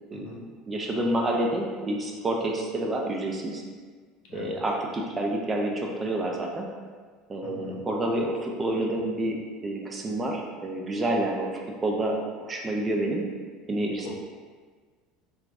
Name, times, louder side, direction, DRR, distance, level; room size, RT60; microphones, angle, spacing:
voice 1, 0.7-3.6 4.3-6.7 7.3-11.5 11.8-13.2 13.7-14.1, right 1 dB, 20° right, 0 dB, 0.5 m, -28 dB
voice 2, 7.4-7.8 14.0-14.1, left 3 dB, 65° left, -3 dB, 0.9 m, -41 dB
4.5 x 2.3 x 2.5 m, 1.5 s
supercardioid pair, 115°, 0 cm